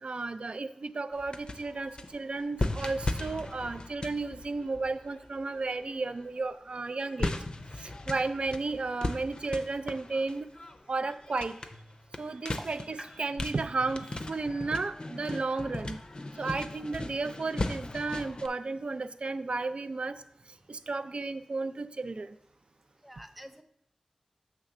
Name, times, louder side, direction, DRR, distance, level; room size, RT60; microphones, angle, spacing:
voice 1, 0.0-7.3 7.8-10.5 10.9-11.6 12.2-16.0 16.4-20.2 20.7-22.3, right 3 dB, 65° right, 12 dB, 0.4 m, -33 dB
sound 1, 1.1-6.3 6.8-18.5, left 2 dB, 50° left, 0.5 m, -37 dB
voice 2, 13.0-13.4 14.6-14.7 16.1-16.2 16.8-16.9 23.0-23.6, equal, ahead, 7 dB, 0.6 m, -47 dB
6.7 x 3.2 x 6.0 m, 0.72 s
wide cardioid pair, 55°, 2 cm